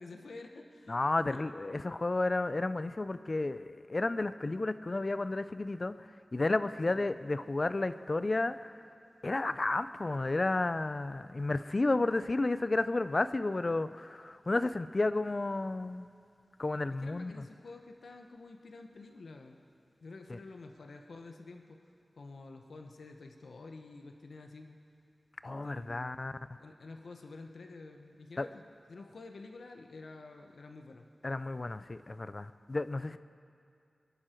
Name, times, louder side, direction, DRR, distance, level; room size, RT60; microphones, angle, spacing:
voice 1, 0.0-1.0 1.3-1.4 6.9-7.0 17.0-19.6 20.0-21.8 22.2-24.8 25.6-26.3 26.6-28.6 28.9-31.1, left 3 dB, 85° left, 4 dB, 1.0 m, -49 dB
voice 2, 0.9-8.7 9.2-16.1 16.6-17.4 20.3-20.4 25.4-26.3 28.4-28.5 31.2-33.2, left 2 dB, 45° left, 13 dB, 0.5 m, -32 dB
22.5 x 11.0 x 4.5 m, 2.4 s
wide cardioid pair, 60°, 0 cm